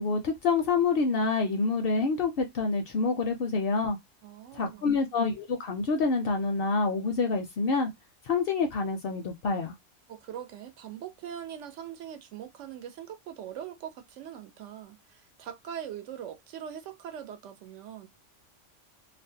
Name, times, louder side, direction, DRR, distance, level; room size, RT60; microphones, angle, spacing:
voice 1, 0.0-4.0 4.5-7.9 8.2-9.7, left 4 dB, 60° left, 0.6 m, -27 dB
voice 2, 4.2-5.0 10.1-18.1, right 9 dB, 80° right, 0.9 m, -42 dB
2.5 x 2.0 x 2.6 m
omnidirectional pair, 1.2 m